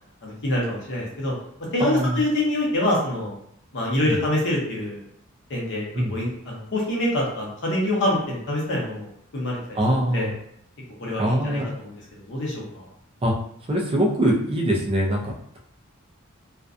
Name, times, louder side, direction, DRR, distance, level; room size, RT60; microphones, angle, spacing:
voice 1, 0.2-1.3 1.7-3.3 3.7-5.0 5.5-10.3 11.0-12.9, left 1 dB, 55° left, -3 dB, 0.8 m, -26 dB
voice 2, 1.8-2.2 4.0-4.2 5.9-6.2 9.7-10.3 11.2-11.7 13.2-13.3 13.7-15.6, equal, 25° right, -2 dB, 0.4 m, -23 dB
2.5 x 2.2 x 2.5 m, 0.69 s
head